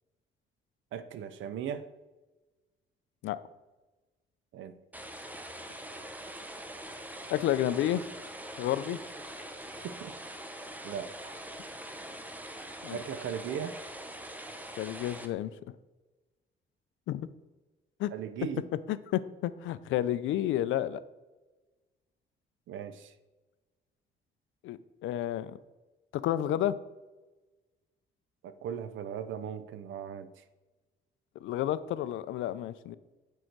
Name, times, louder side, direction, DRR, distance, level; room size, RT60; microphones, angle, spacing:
voice 1, 0.9-1.9 4.5-4.7 9.8-10.2 10.8-11.4 12.9-13.8 18.1-18.6 22.7-23.1 28.4-30.3, right 8 dB, 75° right, 12 dB, 0.6 m, -38 dB
sound 1, 4.9-15.3, right 1 dB, 10° right, 0.7 m, -43 dB
voice 2, 7.3-8.0 8.6-9.0 12.8-13.0 14.8-15.5 17.1-17.3 18.0-18.1 18.9-21.0 24.6-25.6 26.1-26.8 31.4-33.0, left 12 dB, 80° left, 15 dB, 0.4 m, -31 dB
6.4 x 4.7 x 4.6 m, 1.2 s
cardioid pair, 90°, 20 cm